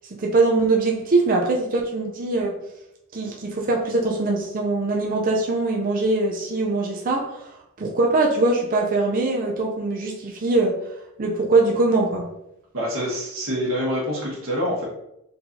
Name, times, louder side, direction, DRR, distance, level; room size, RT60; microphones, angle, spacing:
voice 1, 0.2-2.6 3.1-10.8 11.2-12.3, right 3 dB, 40° right, 0 dB, 0.5 m, -22 dB
voice 2, 12.7-14.9, equal, 60° right, -6 dB, 1.5 m, -26 dB
4.3 x 3.9 x 2.7 m, 0.83 s
head